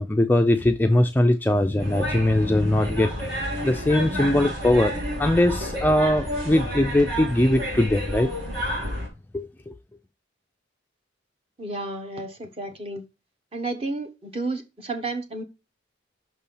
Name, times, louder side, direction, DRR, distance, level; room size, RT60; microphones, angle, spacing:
voice 1, 0.0-3.1 3.6-8.3 9.3-9.8, left 1 dB, 10° left, 0.3 m, -21 dB
sound 1, 1.8-9.1, equal, 60° right, 2.8 m, -30 dB
voice 2, 11.6-13.0 13.5-15.4, right 2 dB, 30° right, 1.0 m, -31 dB
6.1 x 4.2 x 5.4 m
head